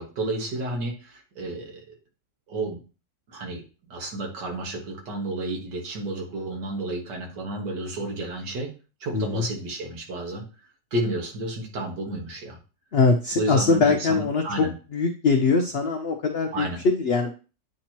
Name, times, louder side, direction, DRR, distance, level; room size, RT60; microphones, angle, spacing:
voice 1, 0.0-1.8 2.5-2.8 3.3-3.6 3.9-8.7 9.0-10.5 10.9-12.6 13.4-14.7 16.5-16.8, right 2 dB, 75° right, 0 dB, 2.1 m, -31 dB
voice 2, 9.1-9.4 12.9-17.3, left 4 dB, 85° left, 4 dB, 0.5 m, -22 dB
8.6 x 2.9 x 4.4 m, 0.34 s
omnidirectional pair, 1.9 m